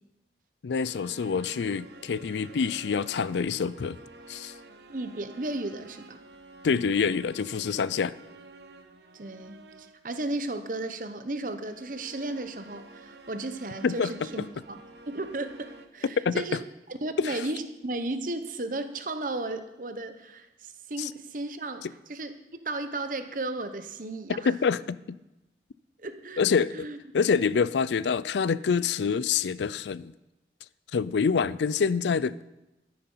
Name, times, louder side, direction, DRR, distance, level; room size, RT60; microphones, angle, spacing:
voice 1, 0.6-4.0 4.3-4.5 6.6-8.2 13.8-14.1 16.2-16.6 17.2-17.4 21.0-21.1 21.8-21.9 24.4-25.0 26.4-26.9 27.1-30.1 30.9-32.4, left 5 dB, 85° left, 18 dB, 0.4 m, -26 dB
sound 1, 0.8-10.1 11.6-15.9, right 2 dB, 75° right, 1.1 m, -50 dB
voice 2, 4.9-6.2 9.1-14.8 15.1-16.6 16.9-22.4 22.6-24.5 26.0-26.4 26.7-27.0, right 2 dB, 50° right, 9 dB, 1.0 m, -34 dB
13.0 x 9.7 x 5.6 m, 0.98 s
head